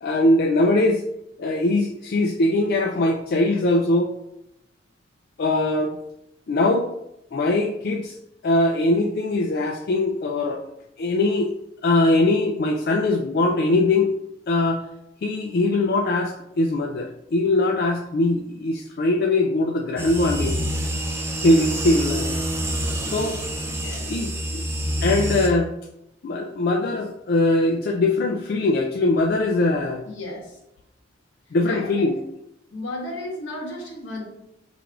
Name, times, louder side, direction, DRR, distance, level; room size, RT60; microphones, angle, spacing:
voice 1, 0.0-1.0 1.4-4.2 5.4-6.0 6.5-6.9 7.3-8.2 8.4-10.6 11.0-11.5 11.8-14.1 14.5-14.8 15.2-20.9 21.4-22.3 23.0-23.4 24.1-24.6 25.0-25.7 26.2-30.0 31.5-32.1, left 2 dB, 50° left, 1 dB, 0.3 m, -21 dB
sound 1, 20.0-25.5, equal, 15° right, 0.5 m, -27 dB
voice 2, 23.8-24.3 30.0-30.6 31.5-32.1 32.7-34.2, left 1 dB, 80° left, -3 dB, 1.5 m, -34 dB
5.7 x 3.3 x 2.5 m, 0.82 s
head